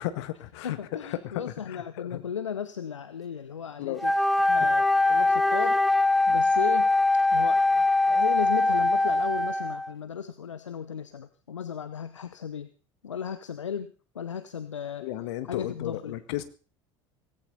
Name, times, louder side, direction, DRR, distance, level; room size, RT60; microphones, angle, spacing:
voice 1, 0.0-0.8 1.0-2.2 3.8-4.0 15.0-16.4, left 14 dB, 65° left, 11 dB, 1.9 m, -34 dB
voice 2, 0.6-4.1 4.5-5.8 6.3-6.9 7.3-12.7 13.0-15.1 15.5-16.2, left 7 dB, 80° left, 13 dB, 0.8 m, -35 dB
Wind instrument woodwind instrument, 4.0-9.9, left 2 dB, ahead, 0.7 m, -22 dB
18.5 x 16.5 x 4.1 m, 0.37 s
figure-of-eight pair, 65°, 15 cm